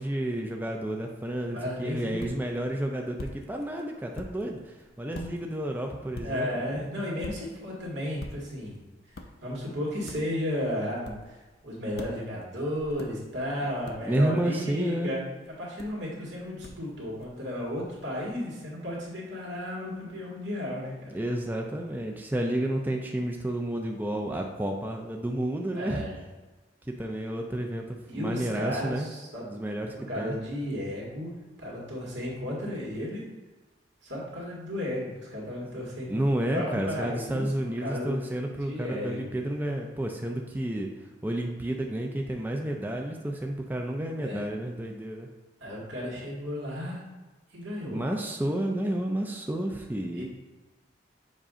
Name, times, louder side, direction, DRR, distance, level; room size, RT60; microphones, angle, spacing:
voice 1, 0.0-6.5 14.0-15.1 21.1-26.0 27.0-29.1 29.4-30.4 36.1-40.9 41.2-45.3 47.9-50.2, right 1 dB, 10° right, 1 dB, 0.4 m, -31 dB
voice 2, 1.3-2.4 6.2-8.8 9.1-15.2 15.6-21.2 25.7-26.2 28.1-29.4 30.1-31.3 31.6-33.2 34.0-37.5 37.8-38.3 38.6-39.4 44.0-44.5 45.6-47.0 47.5-48.0 50.1-50.2, left 1 dB, 85° right, -5 dB, 2.0 m, -34 dB
sound 1, 1.6-18.3, left 2 dB, 55° left, 0.5 m, -48 dB
7.3 x 2.6 x 4.9 m, 1.2 s
head